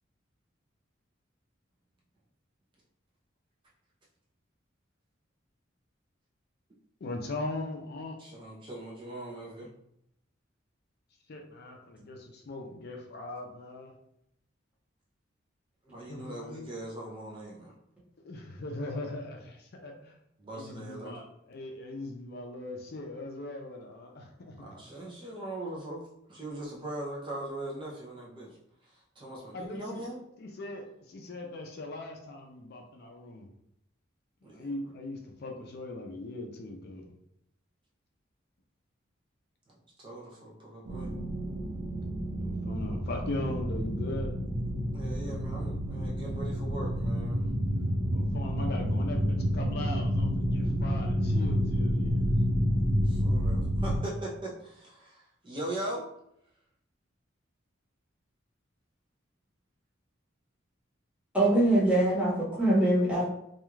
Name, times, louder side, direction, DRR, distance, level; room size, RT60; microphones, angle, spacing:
voice 1, 7.0-8.2 11.3-13.9 16.1-16.7 18.2-20.1 20.5-24.6 29.5-30.0 30.4-33.5 34.4-37.1 42.4-44.3 48.1-52.3 61.7-61.8, left 2 dB, 55° left, 2 dB, 0.4 m, -40 dB
voice 2, 8.2-9.7 15.8-17.7 20.4-21.2 24.6-26.0 26.3-28.6 28.8-30.2 34.4-34.7 39.7-41.1 44.9-47.5 53.0-56.1, right 1 dB, 25° right, -4 dB, 0.5 m, -40 dB
sound 1, 40.9-54.0, equal, 85° right, 0.6 m, -29 dB
voice 3, 61.3-63.3, right 1 dB, 5° right, -7 dB, 0.9 m, -23 dB
2.3 x 2.2 x 3.0 m, 0.76 s
head